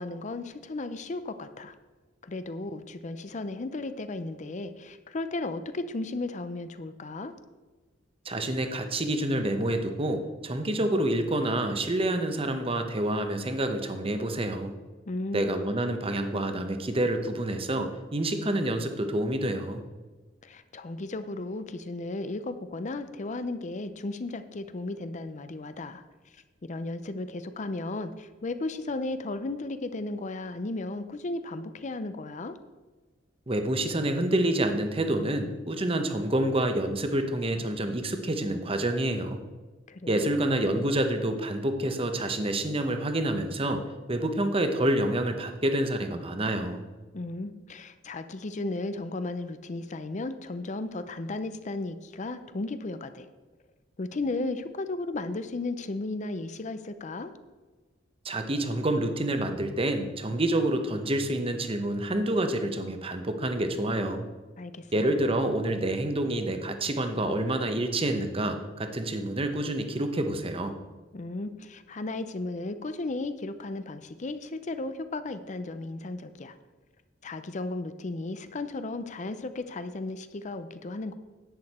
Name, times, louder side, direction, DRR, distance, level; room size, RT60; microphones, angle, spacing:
voice 1, 0.0-1.7 2.2-7.3 15.1-15.5 20.4-26.0 26.3-32.6 39.9-40.3 47.1-53.3 54.0-57.3 64.6-65.0 71.1-76.6 77.2-81.1, left 2 dB, 40° left, 11 dB, 0.5 m, -35 dB
voice 2, 8.2-14.7 15.3-19.8 33.5-39.4 40.1-43.8 44.1-46.8 58.2-64.3 64.9-70.7, right 1 dB, 30° right, 7 dB, 0.9 m, -28 dB
10.5 x 8.6 x 4.3 m, 1.3 s
head